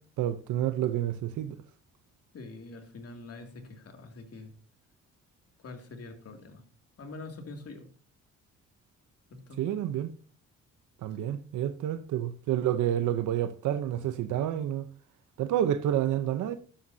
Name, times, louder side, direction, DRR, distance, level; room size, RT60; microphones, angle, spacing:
voice 1, 0.2-1.6 9.6-10.1 11.0-14.9 15.4-16.6, right 11 dB, 80° right, 0.8 m, -29 dB
voice 2, 2.3-4.5 5.6-6.6 7.0-7.9 9.3-9.6, left 3 dB, 50° left, 2.5 m, -44 dB
12.5 x 11.5 x 2.7 m
cardioid pair, 90°, 30 cm